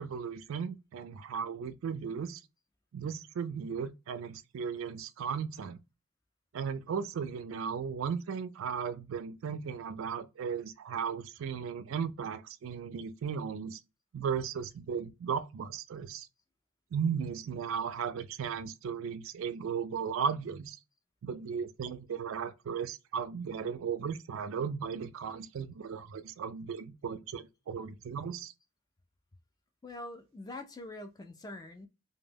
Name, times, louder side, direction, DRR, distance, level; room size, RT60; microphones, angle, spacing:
voice 1, 0.0-2.4 2.9-5.8 6.5-13.8 14.1-16.3 16.9-20.8 21.2-28.5, right 6 dB, 70° right, 0.3 m, -36 dB
voice 2, 29.8-31.9, left 2 dB, 20° left, 0.3 m, -44 dB
2.1 x 2.1 x 3.2 m
head